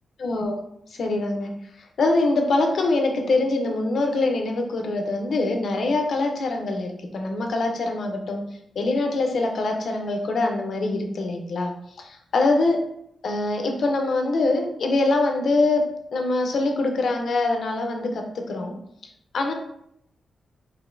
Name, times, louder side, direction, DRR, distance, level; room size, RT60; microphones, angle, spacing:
voice 1, 0.2-0.6 0.9-1.5 1.8-8.4 8.8-11.7 12.0-12.8 13.2-18.7 19.3-19.5, left 2 dB, 50° left, 3 dB, 0.5 m, -24 dB
4.9 x 2.6 x 2.5 m, 0.74 s
wide cardioid pair, 175°, 0 cm